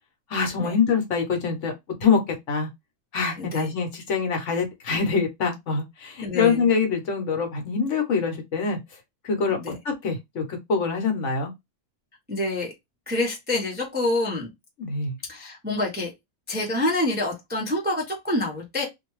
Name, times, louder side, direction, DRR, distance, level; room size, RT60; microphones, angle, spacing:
voice 1, 0.3-1.7 2.0-2.2 2.5-2.7 3.1-9.6 9.8-11.5 14.8-15.2, left 5 dB, 55° left, 1.1 m, -25 dB
voice 2, 3.4-3.7 6.2-6.6 9.5-9.8 12.3-12.7 13.1-14.5 15.3-16.1 16.5-18.8, left 2 dB, 15° right, 0.4 m, -27 dB
2.6 x 2.2 x 3.0 m
omnidirectional pair, 1.6 m